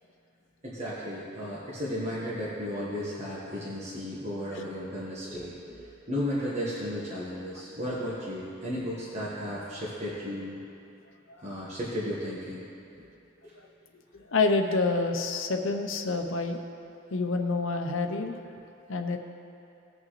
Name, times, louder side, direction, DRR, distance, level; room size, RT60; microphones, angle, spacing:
voice 1, 0.6-10.6 11.4-12.6 13.4-13.5, equal, 35° right, -8 dB, 1.5 m, -34 dB
voice 2, 13.9-16.6 17.1-18.4 18.9-19.2, left 3 dB, 70° left, 5 dB, 0.8 m, -28 dB
18.0 x 6.2 x 3.2 m, 2.6 s
head